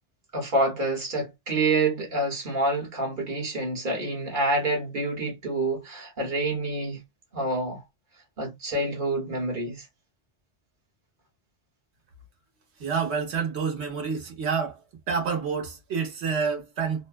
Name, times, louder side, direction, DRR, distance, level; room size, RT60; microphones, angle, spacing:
voice 1, 0.3-7.0 7.3-7.8 8.4-9.8, right 2 dB, 50° right, 1.2 m, -27 dB
voice 2, 12.8-14.8 15.1-17.1, right 5 dB, 75° right, 1.2 m, -28 dB
2.7 x 2.1 x 2.3 m
omnidirectional pair, 1.1 m